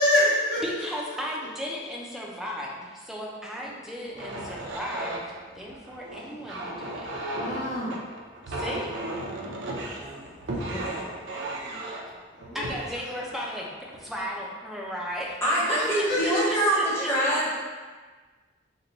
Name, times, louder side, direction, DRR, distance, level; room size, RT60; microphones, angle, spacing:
voice 1, 0.0-1.5 3.5-4.2 7.3-8.0 11.3-11.8 12.4-12.7 13.1-13.3 15.6-17.2, left 1 dB, 65° left, -8 dB, 0.9 m, -29 dB
voice 2, 0.6-5.2 5.6-7.1 8.5-8.9 12.5-15.4 15.7-17.1, equal, ahead, -3 dB, 0.4 m, -35 dB
sound 1, 4.1-14.4 15.1-15.3 15.7-16.2, right 1 dB, 80° right, 0.5 m, -35 dB
voice 3, 10.5-11.1 15.4-17.5, right 1 dB, 15° left, -7 dB, 0.8 m, -25 dB
2.8 x 2.2 x 3.9 m, 1.4 s
head